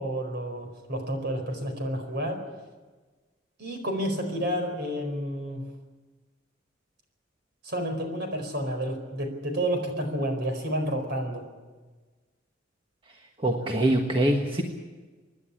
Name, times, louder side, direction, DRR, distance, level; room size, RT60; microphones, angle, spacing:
voice 1, 0.0-2.4 3.6-5.6 7.6-11.4, right 1 dB, 60° right, 5 dB, 4.6 m, -30 dB
voice 2, 13.4-14.6, right 1 dB, 25° right, 2 dB, 1.5 m, -24 dB
26.0 x 11.0 x 10.0 m, 1.3 s
head